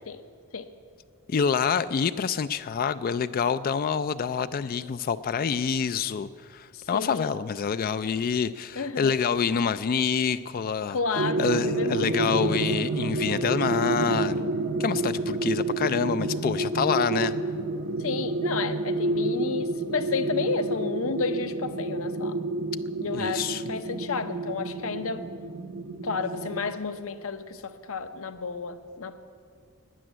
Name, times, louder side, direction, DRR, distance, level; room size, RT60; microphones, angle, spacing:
voice 1, 1.3-11.0 11.4-14.4 14.8-17.4 23.1-23.6, left 6 dB, 40° left, 13 dB, 0.3 m, -27 dB
voice 2, 6.7-7.3 8.8-9.2 10.9-12.6 18.0-22.4 23.0-25.3 26.0-29.2, left 4 dB, 65° left, 10 dB, 0.8 m, -31 dB
sound 1, 11.2-26.7, right 2 dB, 50° right, 0.6 m, -29 dB
12.5 x 9.7 x 9.0 m, 2.2 s
head